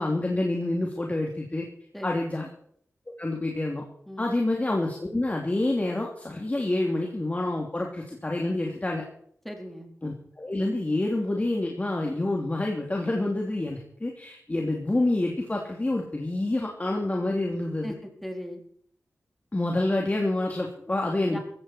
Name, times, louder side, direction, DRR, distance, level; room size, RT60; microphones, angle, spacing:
voice 1, 0.0-1.7 2.0-2.5 3.2-3.8 4.2-9.0 10.0-17.9 19.5-21.4, left 2 dB, 25° left, 0 dB, 3.0 m, -27 dB
voice 2, 1.9-2.2 4.1-4.3 9.4-9.9 17.8-18.6 21.3-21.4, equal, 5° left, 2 dB, 4.3 m, -38 dB
17.0 x 15.0 x 4.5 m, 0.64 s
wide cardioid pair, 75°, 5 cm